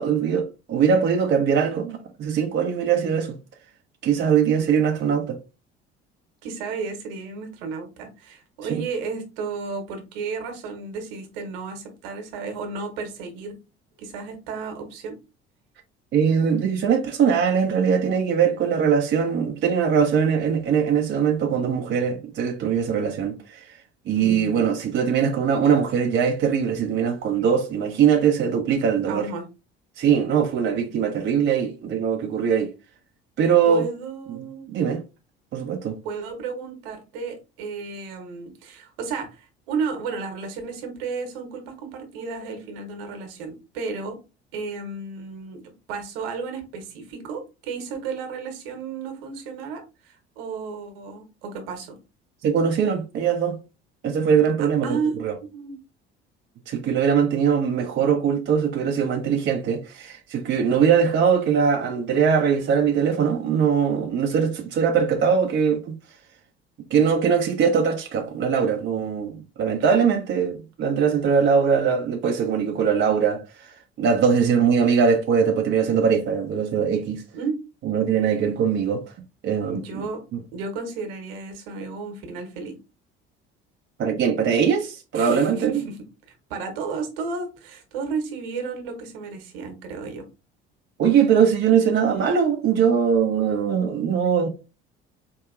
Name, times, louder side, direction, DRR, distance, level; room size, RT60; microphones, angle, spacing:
voice 1, 0.0-3.3 4.0-5.4 16.1-23.8 24.1-29.3 30.0-32.7 33.4-33.9 34.3-34.4 34.7-35.0 35.5-36.0 52.4-53.6 54.0-55.3 56.7-66.0 66.9-77.2 77.9-79.0 79.4-80.0 80.3-80.4 84.0-85.8 91.0-94.5, right 7 dB, 35° right, 0.6 m, -21 dB
voice 2, 6.4-13.6 14.0-15.2 24.1-24.7 29.1-29.4 33.7-34.7 36.0-44.2 44.5-51.9 54.6-55.1 55.4-55.8 69.8-70.1 77.3-77.6 79.7-80.2 80.5-82.8 85.1-86.0 86.5-90.2, right 4 dB, 65° right, 1.1 m, -33 dB
4.6 x 2.7 x 2.4 m
figure-of-eight pair, 55°, 31 cm